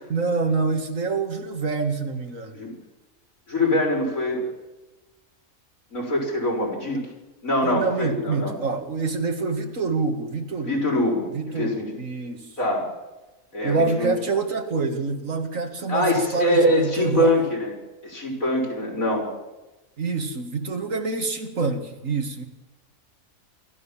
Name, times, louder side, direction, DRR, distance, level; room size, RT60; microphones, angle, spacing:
voice 1, 0.1-2.6 7.6-10.8 11.3-12.5 13.6-17.3 20.0-22.5, right 4 dB, 75° right, 5 dB, 2.5 m, -26 dB
voice 2, 3.5-4.5 5.9-7.0 7.4-8.5 10.6-11.3 11.5-11.9 12.6-12.9 13.5-14.1 15.9-17.7 18.0-19.3, left 1 dB, 85° left, -1 dB, 6.5 m, -23 dB
27.0 x 13.5 x 7.4 m, 1.1 s
omnidirectional pair, 1.4 m